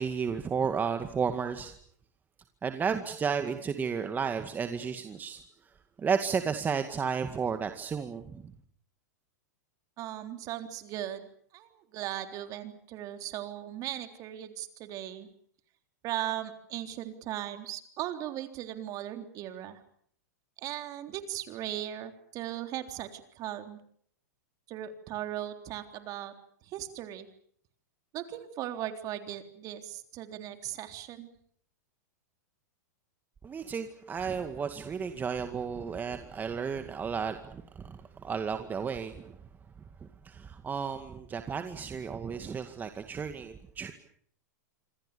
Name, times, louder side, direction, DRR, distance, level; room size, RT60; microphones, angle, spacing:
voice 1, 0.0-1.7 2.6-5.4 6.0-8.5 33.4-39.4 40.0-43.9, right 6 dB, 20° right, 7 dB, 2.1 m, -33 dB
voice 2, 10.0-11.3 11.5-15.3 16.0-19.8 20.6-23.8 24.7-26.3 26.6-27.3 28.1-31.3, right 12 dB, 40° right, 7 dB, 3.7 m, -38 dB
26.5 x 26.0 x 7.0 m, 0.63 s
hypercardioid pair, 115°, 9 cm